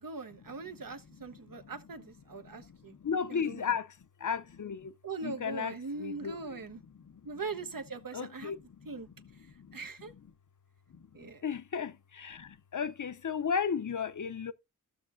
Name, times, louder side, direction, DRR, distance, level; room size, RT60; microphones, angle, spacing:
voice 1, 0.0-2.9 3.3-3.6 5.0-6.8 7.2-8.5 8.8-9.1 9.7-10.1 11.1-11.4, right 4 dB, 70° right, 1.0 m, -41 dB
voice 2, 2.3-3.9 4.2-4.9 5.2-6.6 7.0-7.1 8.1-8.9 9.6-9.8 10.9-11.1 11.4-14.5, left 6 dB, 60° left, 0.6 m, -35 dB
14.5 x 6.5 x 2.5 m
wide cardioid pair, 50°, 34 cm